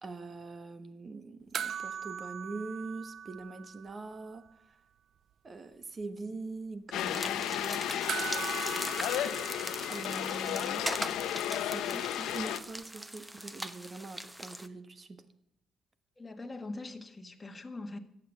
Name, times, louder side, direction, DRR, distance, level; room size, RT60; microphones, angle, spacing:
voice 1, 0.0-4.4 5.4-7.9 9.9-10.9 11.5-15.2, right 3 dB, 35° right, 1.4 m, -43 dB
sound 1, 1.5-4.2 4.5-4.6 8.1-10.7 12.8-12.9, right 8 dB, 60° right, 0.5 m, -40 dB
sound 2, 6.9-12.6, left 11 dB, 85° left, 0.8 m, -33 dB
sound 3, 7.0-14.7, right 1 dB, 5° right, 0.9 m, -40 dB
voice 2, 16.2-18.0, left 2 dB, 20° left, 1.7 m, -42 dB
14.0 x 8.7 x 6.9 m
cardioid pair, 90°, 0 cm